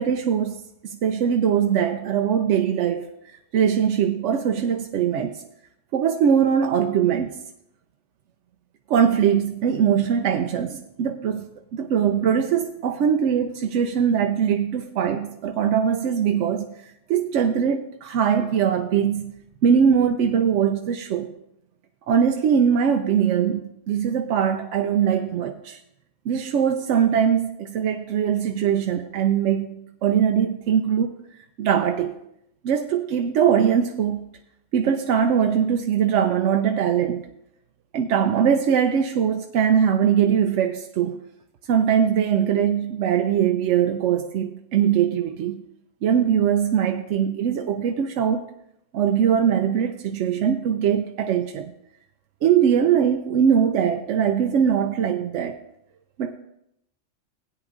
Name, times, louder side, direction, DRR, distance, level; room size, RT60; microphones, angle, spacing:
voice 1, 0.0-5.4 5.9-7.4 8.9-16.8 17.1-19.3 19.6-21.4 22.1-25.8 26.3-31.2 31.6-32.2 32.6-34.3 34.7-37.3 37.9-41.2 41.7-45.6 46.0-48.5 48.9-51.7 52.4-55.6 56.2-56.4, right 8 dB, 75° right, 0.9 m, -21 dB
16.5 x 9.3 x 2.5 m
omnidirectional pair, 1.3 m